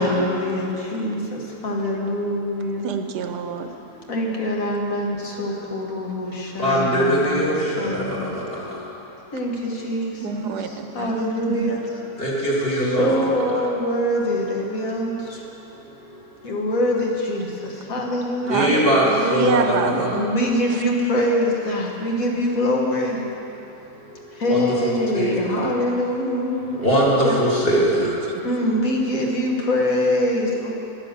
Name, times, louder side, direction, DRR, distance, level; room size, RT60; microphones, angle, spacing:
voice 1, 0.0-2.9 4.1-7.5 7.8-8.3 9.3-10.5 10.9-11.8 13.0-15.4 16.4-18.7 20.1-23.3 24.3-26.8 27.2-27.4 28.4-30.7, left 1 dB, 55° left, -1 dB, 1.7 m, -24 dB
voice 2, 2.8-3.7 10.2-11.4 18.5-20.3 20.7-20.8 27.7-28.6, right 6 dB, 75° right, 6 dB, 1.3 m, -27 dB
voice 3, 6.6-8.4 12.2-13.1 18.5-20.1 24.5-25.4 26.7-28.2, equal, 35° left, -6 dB, 2.6 m, -21 dB
10.5 x 9.8 x 7.2 m, 3.0 s
omnidirectional pair, 1.8 m